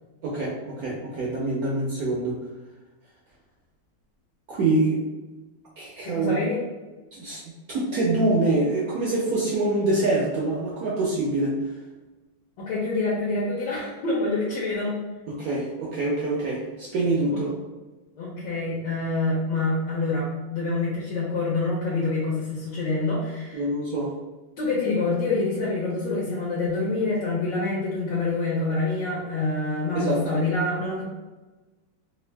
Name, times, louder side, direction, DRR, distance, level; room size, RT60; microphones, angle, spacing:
voice 1, 0.2-2.4 4.5-5.1 5.8-6.4 7.1-11.6 15.3-17.5 23.5-24.1 29.9-30.4, right 2 dB, 65° right, -4 dB, 0.9 m, -25 dB
voice 2, 6.0-6.6 12.6-15.0 17.3-17.4 18.2-23.6 24.6-31.0, left 3 dB, 70° left, -5 dB, 1.4 m, -26 dB
3.5 x 2.5 x 3.3 m, 1.2 s
omnidirectional pair, 2.2 m